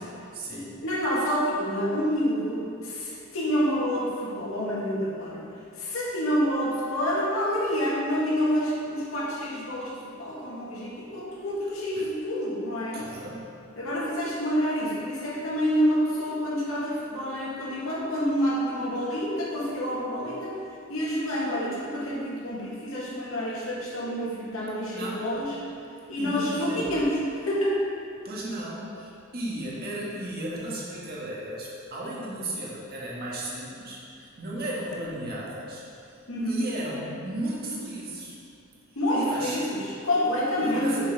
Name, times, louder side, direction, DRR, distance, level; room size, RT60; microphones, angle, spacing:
voice 1, 0.0-0.8 12.0-12.1 12.9-13.5 24.9-25.3 26.2-26.9 28.2-35.8 36.5-38.4 39.1-39.6 40.5-41.1, right 1 dB, 50° right, -5 dB, 1.6 m, -35 dB
voice 2, 0.5-5.4 5.8-13.0 13.8-20.6 20.9-25.6 26.1-27.8 36.3-36.6 39.0-41.1, equal, 90° left, -6 dB, 1.9 m, -28 dB
7.2 x 6.8 x 3.9 m, 2.5 s
head